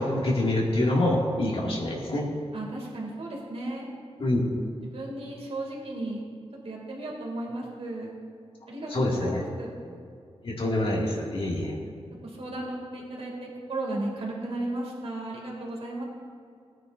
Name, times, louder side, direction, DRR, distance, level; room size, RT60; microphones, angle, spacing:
voice 1, 0.0-2.3 4.2-4.4 8.9-9.4 10.4-11.7, left 1 dB, 55° left, -3 dB, 2.2 m, -26 dB
voice 2, 2.5-3.9 4.8-6.2 6.6-8.1 8.7-9.8 12.2-16.0, right 2 dB, 65° right, -3 dB, 2.4 m, -35 dB
19.0 x 9.8 x 2.6 m, 2.3 s
wide cardioid pair, 95°, 11 cm